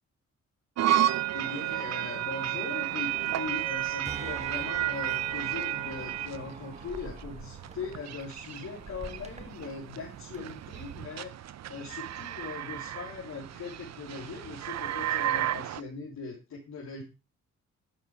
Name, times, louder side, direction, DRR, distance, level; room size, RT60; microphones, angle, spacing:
sound 1, 0.8-15.8, right 12 dB, 65° right, 0.7 m, -33 dB
voice 1, 1.3-17.0, left 4 dB, 70° left, -4 dB, 3.5 m, -40 dB
sound 2, 3.0-11.0, right 3 dB, 20° right, 1.4 m, -46 dB
10.5 x 7.4 x 5.0 m, 0.29 s
cardioid pair, 70°, 30 cm